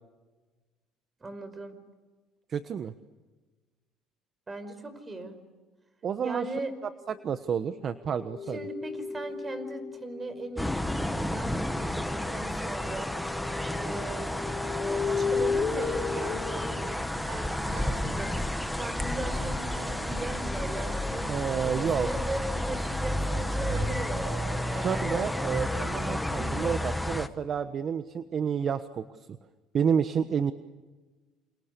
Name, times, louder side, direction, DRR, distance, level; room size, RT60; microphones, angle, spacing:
voice 1, 1.2-1.8 4.5-5.4 6.2-6.7 8.5-13.2 13.8-14.4 14.8-25.1, right 2 dB, 20° right, 11 dB, 5.2 m, -39 dB
voice 2, 2.5-2.9 6.0-6.5 7.2-8.6 21.3-22.1 24.7-29.4 29.7-30.5, right 7 dB, 40° right, 11 dB, 1.2 m, -30 dB
sound 1, 8.1-11.2 11.7-17.0, left 5 dB, 40° left, 2.4 m, -34 dB
sound 2, 10.6-27.3, left 1 dB, 5° left, 1.6 m, -31 dB
sound 3, 15.6-25.7, right 7 dB, 70° right, 5.1 m, -46 dB
29.0 x 28.5 x 6.9 m, 1.3 s
cardioid pair, 110°, 0 cm